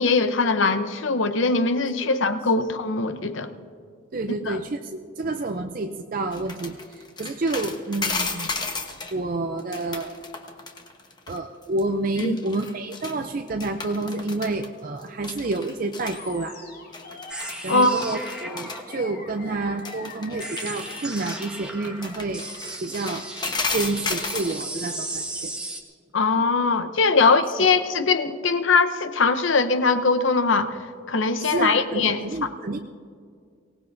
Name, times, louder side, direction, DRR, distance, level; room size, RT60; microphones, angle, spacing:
voice 1, 0.0-3.5 4.5-4.6 12.2-12.4 17.7-17.9 26.1-30.8 31.1-32.2, left 4 dB, 70° left, 10 dB, 0.8 m, -21 dB
voice 2, 4.1-8.5 9.1-10.2 11.3-16.6 17.6-22.5 22.8-23.3 23.7-25.5 27.6-27.7 31.4-32.8, right 2 dB, 45° right, 5 dB, 0.5 m, -29 dB
sound 1, 6.3-9.1 9.6-11.4 11.6-11.8 12.2-13.2 13.5-14.7 15.0-16.2 16.9-17.6 17.9-18.8 19.8-24.6, left 4 dB, 20° left, 1.0 m, -33 dB
Animal, 16.0-24.0, left 3 dB, 50° left, 2.6 m, -44 dB
sound 2, 17.3-25.8, right 2 dB, 5° right, 1.0 m, -36 dB
23.5 x 18.0 x 2.6 m, 2.2 s
head